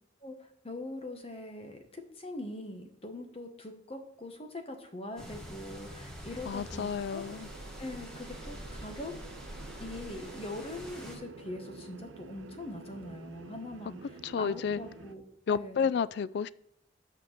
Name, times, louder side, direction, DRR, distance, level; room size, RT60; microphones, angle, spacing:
voice 1, 0.6-7.2 7.8-9.1 9.8-15.2 15.5-15.9, left 1 dB, 30° left, 5 dB, 1.1 m, -42 dB
sound 1, 5.2-11.2, equal, 5° left, 1.7 m, -45 dB
voice 2, 6.4-7.5 14.2-14.8 15.5-16.5, left 6 dB, 60° left, 18 dB, 0.3 m, -31 dB
sound 2, 7.2-15.1, right 4 dB, 85° right, 0.5 m, -49 dB
8.7 x 4.5 x 6.6 m, 0.71 s
head